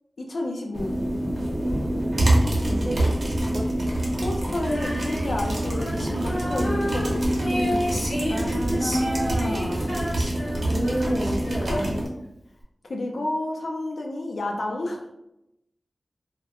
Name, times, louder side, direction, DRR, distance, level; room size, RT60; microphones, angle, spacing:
voice 1, 0.2-0.9 4.2-8.0 11.6-11.9 12.9-15.0, left 1 dB, 85° left, 0 dB, 0.4 m, -31 dB
sound 1, 0.7-12.1, right 1 dB, 75° right, 0.6 m, -26 dB
voice 2, 2.7-3.7 8.3-10.1 10.7-12.0, right 1 dB, 35° right, 2 dB, 0.4 m, -29 dB
Female singing, 4.6-12.1, equal, 55° left, 0.7 m, -31 dB
2.3 x 2.0 x 2.8 m, 0.85 s
wide cardioid pair, 80°, 0 cm